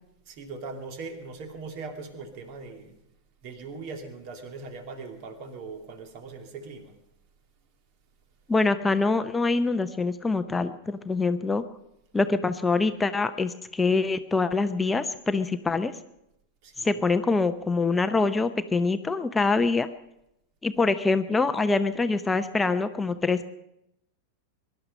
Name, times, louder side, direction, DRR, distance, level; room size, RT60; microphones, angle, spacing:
voice 1, 0.3-3.0 3.4-6.9 16.6-17.0, right 4 dB, 45° right, 6 dB, 2.4 m, -40 dB
voice 2, 8.5-11.6 12.1-15.9 16.8-19.9 20.6-23.5, left 3 dB, 10° left, 10 dB, 0.8 m, -25 dB
22.5 x 12.0 x 5.5 m, 0.84 s
figure-of-eight pair, 90°, 0 cm